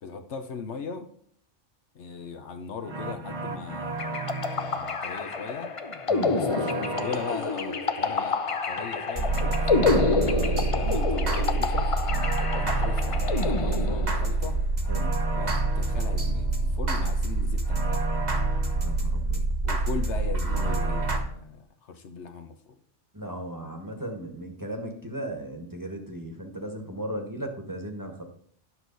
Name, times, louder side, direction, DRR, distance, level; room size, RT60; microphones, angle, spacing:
voice 1, 0.0-1.1 1.9-5.7 6.3-9.8 10.7-11.9 12.5-14.6 15.4-18.0 19.6-22.8, left 5 dB, 70° left, 7 dB, 1.2 m, -38 dB
sound 1, 2.8-4.9 6.4-7.7 9.1-21.2, right 2 dB, 35° right, 1.2 m, -27 dB
sound 2, 4.0-14.4, left 4 dB, 35° left, 0.6 m, -28 dB
voice 2, 10.3-10.6 14.9-15.1 18.8-19.5 23.1-28.2, right 1 dB, 15° right, 3 dB, 1.3 m, -36 dB
11.0 x 6.3 x 4.0 m, 0.62 s
omnidirectional pair, 1.2 m